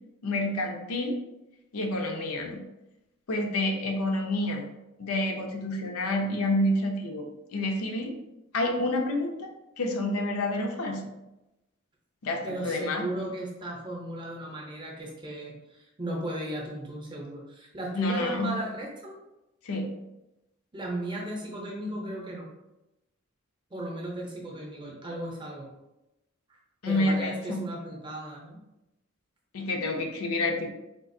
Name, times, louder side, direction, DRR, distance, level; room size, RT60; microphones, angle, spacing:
voice 1, 0.2-1.2 1.7-2.6 3.3-4.6 5.0-7.2 7.5-8.1 8.5-9.5 9.8-11.0 12.2-13.0 17.9-18.5 19.6-19.9 26.8-27.6 29.5-30.7, left 1 dB, 80° left, 2 dB, 0.5 m, -28 dB
voice 2, 12.4-19.2 20.7-22.5 23.7-25.7 26.9-28.6, right 1 dB, 20° right, -2 dB, 0.6 m, -36 dB
3.7 x 2.4 x 2.6 m, 0.95 s
head